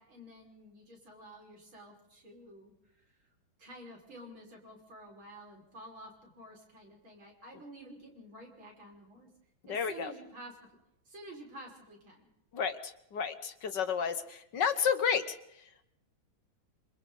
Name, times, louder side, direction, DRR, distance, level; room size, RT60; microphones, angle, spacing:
voice 1, 0.0-2.7 3.6-9.3 9.7-10.6 11.1-12.3, right 1 dB, 80° right, 0 dB, 6.3 m, -50 dB
voice 2, 9.7-10.1 12.5-15.4, left 7 dB, 60° left, 10 dB, 1.9 m, -31 dB
26.5 x 26.5 x 4.0 m, 0.82 s
omnidirectional pair, 2.2 m